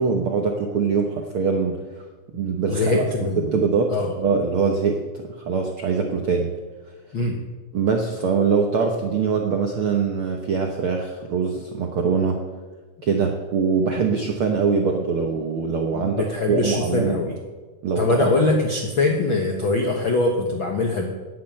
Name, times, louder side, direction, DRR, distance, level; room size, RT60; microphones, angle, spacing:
voice 1, 0.0-1.8 2.3-3.1 3.5-3.9 4.2-6.5 7.7-12.4 13.0-17.2 17.8-18.3, right 5 dB, 70° right, 3 dB, 1.2 m, -23 dB
voice 2, 2.7-3.5 3.9-4.1 7.1-7.4 15.9-17.3 17.9-21.1, left 3 dB, 70° left, 2 dB, 1.2 m, -22 dB
10.5 x 10.0 x 8.7 m, 1.3 s
omnidirectional pair, 4.0 m